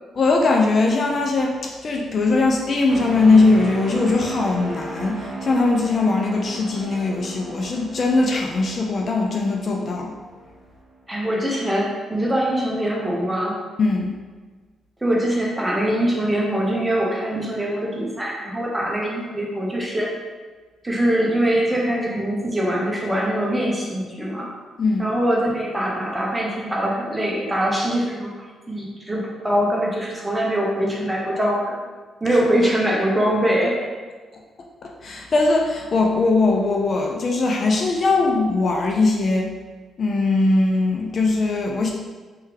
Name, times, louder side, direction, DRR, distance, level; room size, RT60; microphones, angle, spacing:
voice 1, 0.1-10.1 13.8-14.2 24.8-25.1 32.3-32.4 34.8-39.5 40.0-41.9, left 3 dB, 45° left, 1 dB, 0.4 m, -20 dB
sound 1, 2.9-10.7 11.2-11.4, right 1 dB, 55° right, 0.7 m, -36 dB
voice 2, 11.1-13.6 15.0-20.1 20.8-24.5 25.0-31.7 32.2-33.9, right 1 dB, 10° right, -3 dB, 0.9 m, -23 dB
3.4 x 3.2 x 3.3 m, 1.4 s
cardioid pair, 110°, 0 cm